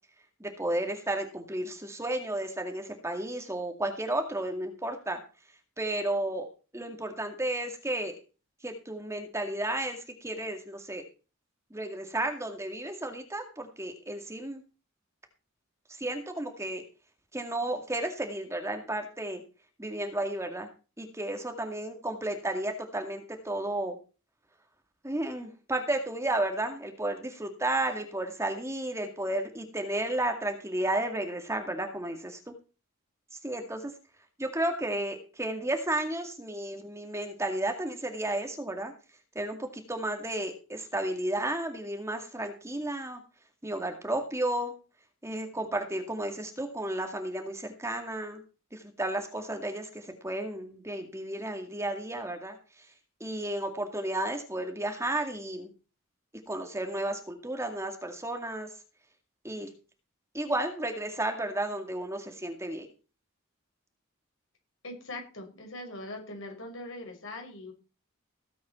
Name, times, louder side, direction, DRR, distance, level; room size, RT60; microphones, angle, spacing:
voice 1, 0.4-5.2 5.8-6.5 6.7-8.2 8.6-11.0 11.7-14.6 16.0-16.8 17.3-19.4 19.8-20.7 21.0-24.0 25.0-32.5 33.4-33.9 34.4-38.9 39.4-43.2 43.6-44.7 45.2-48.4 48.7-52.6 53.2-55.7 56.5-58.7 59.4-59.7 60.3-62.9, right 1 dB, 15° right, 5 dB, 2.1 m, -33 dB
voice 2, 64.8-67.7, left 2 dB, 65° left, 2 dB, 5.9 m, -41 dB
17.5 x 8.5 x 4.4 m, 0.34 s
head